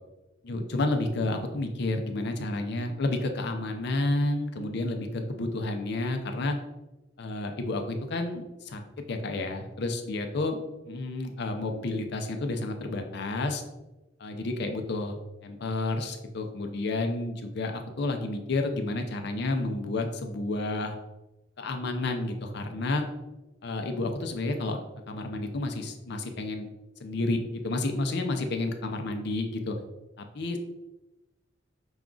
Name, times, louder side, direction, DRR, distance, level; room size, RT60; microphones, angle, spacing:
voice 1, 0.4-6.6 7.2-8.8 9.1-10.6 10.9-13.6 14.2-21.0 21.6-23.1 23.6-24.8 25.1-26.7 27.0-29.8 30.2-30.6, left 2 dB, 65° left, 5 dB, 0.6 m, -30 dB
5.9 x 2.4 x 3.8 m, 1.0 s
head